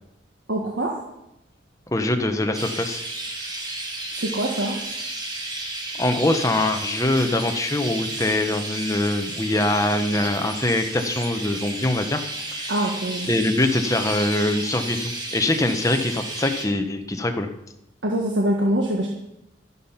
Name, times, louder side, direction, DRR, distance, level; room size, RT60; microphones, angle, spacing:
voice 1, 0.5-1.0 4.1-4.8 12.7-13.3 18.0-19.1, right 1 dB, 65° right, 0 dB, 1.6 m, -24 dB
voice 2, 1.9-3.0 5.9-12.2 12.5-12.7 13.3-17.5, left 1 dB, 15° left, 6 dB, 1.0 m, -23 dB
Chirp tweet, 2.5-16.6, right 2 dB, 20° right, 2.0 m, -32 dB
12.5 x 11.0 x 5.7 m, 0.89 s
head